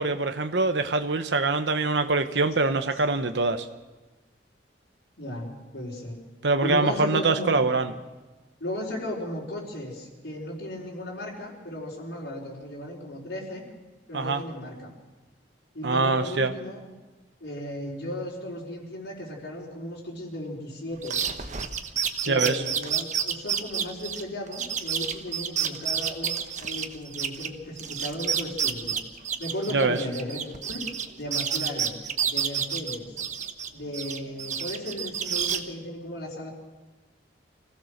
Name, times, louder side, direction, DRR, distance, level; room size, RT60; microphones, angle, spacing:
voice 1, 0.0-3.7 6.4-7.9 14.1-14.4 15.8-16.5 22.3-22.6 29.7-30.0, right 3 dB, 75° right, 8 dB, 1.0 m, -24 dB
voice 2, 5.2-6.2 6.6-7.7 8.6-13.6 14.1-14.9 15.7-16.8 17.4-21.2 22.2-29.0 29.4-30.8 31.2-32.0 32.3-33.0 33.7-36.5, left 1 dB, 85° left, -5 dB, 4.6 m, -35 dB
sound 1, 21.0-27.5 27.8-31.1 31.3-33.7 33.9-35.6, right 8 dB, 45° right, 1.2 m, -29 dB
25.5 x 16.0 x 6.6 m, 1.2 s
head